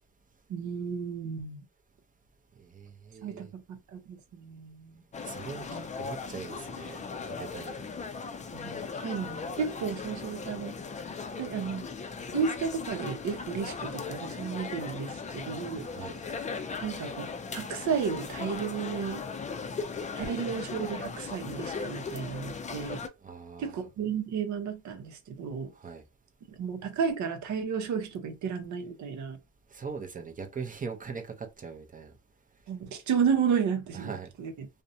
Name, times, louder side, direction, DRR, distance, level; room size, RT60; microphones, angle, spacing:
voice 1, 0.5-1.6 3.2-5.0 5.7-5.9 8.5-10.7 11.4-11.8 12.3-15.9 16.8-19.2 20.1-23.0 23.6-25.7 26.5-29.4 32.7-34.7, right 6 dB, 70° right, 0.7 m, -33 dB
voice 2, 2.6-3.5 5.2-5.7 6.0-8.1 15.9-16.2 23.2-23.9 25.7-26.0 29.7-32.2 33.9-34.3, right 5 dB, 25° right, 0.5 m, -41 dB
sound 1, 5.1-23.1, left 5 dB, 25° left, 0.4 m, -38 dB
2.5 x 2.1 x 2.6 m
cardioid pair, 90°, 30 cm